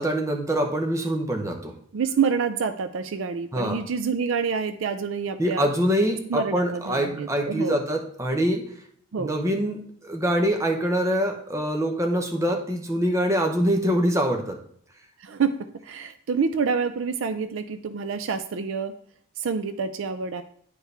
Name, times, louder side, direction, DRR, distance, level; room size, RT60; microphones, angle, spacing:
voice 1, 0.0-1.7 3.5-3.8 5.4-8.6 9.2-14.6, equal, 15° right, 3 dB, 0.8 m, -24 dB
voice 2, 1.9-5.6 6.3-7.8 9.1-9.3 15.2-15.5 15.8-18.9 19.4-20.4, right 5 dB, 65° right, 10 dB, 0.4 m, -27 dB
9.8 x 4.6 x 3.3 m, 0.62 s
head